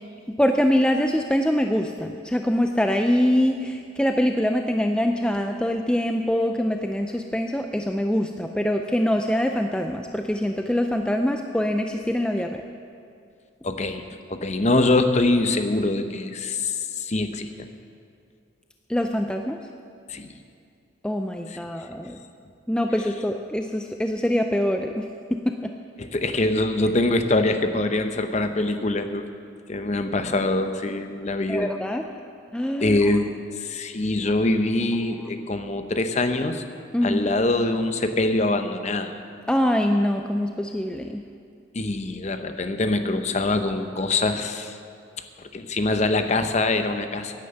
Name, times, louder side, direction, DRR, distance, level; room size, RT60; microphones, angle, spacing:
voice 1, 0.3-12.6 18.9-19.6 21.0-22.2 22.7-25.7 31.5-32.0 32.5-33.0 35.2-35.3 36.9-37.3 39.5-41.2, equal, 5° left, 4 dB, 0.4 m, -24 dB
voice 2, 13.6-14.0 14.3-17.7 20.1-20.3 26.0-29.2 29.7-31.7 32.8-36.6 37.0-39.2 41.7-44.8 45.5-47.3, left 2 dB, 35° left, 8 dB, 0.7 m, -24 dB
11.0 x 10.5 x 7.8 m, 2.4 s
head